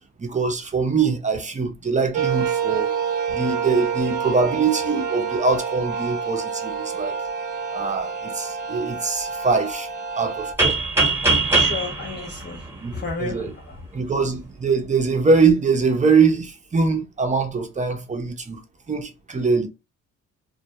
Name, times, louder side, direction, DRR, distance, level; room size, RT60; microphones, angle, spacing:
voice 1, 0.2-2.9 3.3-7.2 7.7-9.9 10.2-10.8 12.8-13.5 13.9-18.6 18.9-19.7, right 4 dB, 25° right, 0.6 m, -22 dB
sound 1, 2.1-10.5, right 6 dB, 85° right, 0.6 m, -27 dB
sound 2, 10.6-13.3, right 3 dB, 10° right, 1.0 m, -21 dB
voice 2, 11.5-12.6 12.9-13.4, left 4 dB, 35° left, 0.6 m, -31 dB
2.2 x 2.1 x 2.8 m
cardioid pair, 90°, 30 cm